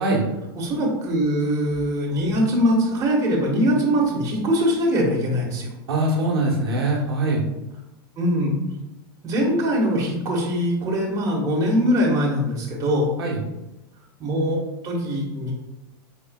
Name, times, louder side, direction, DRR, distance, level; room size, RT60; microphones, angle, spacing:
voice 1, 0.6-5.7 8.2-8.5 9.2-13.1 14.2-14.6 14.8-15.5, equal, 25° right, -2 dB, 1.4 m, -22 dB
voice 2, 5.9-7.5 13.2-13.4, right 2 dB, 90° right, -1 dB, 1.1 m, -22 dB
4.8 x 4.4 x 2.3 m, 0.99 s
hypercardioid pair, 120°, 12 cm